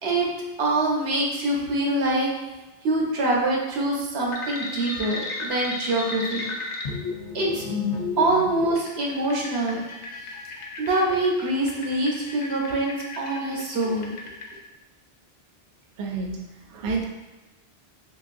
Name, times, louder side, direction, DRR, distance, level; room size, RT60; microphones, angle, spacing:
voice 1, 0.6-2.3 2.8-6.5 7.3-7.6 8.2-9.8 10.8-14.2, right 2 dB, 85° right, -2 dB, 1.1 m, -24 dB
sound 1, 4.3-14.5, left 3 dB, 55° left, 0.6 m, -33 dB
voice 2, 16.0-16.4 16.7-17.0, right 4 dB, 65° right, 1 dB, 0.7 m, -29 dB
3.7 x 3.1 x 2.5 m, 1.1 s
omnidirectional pair, 1.1 m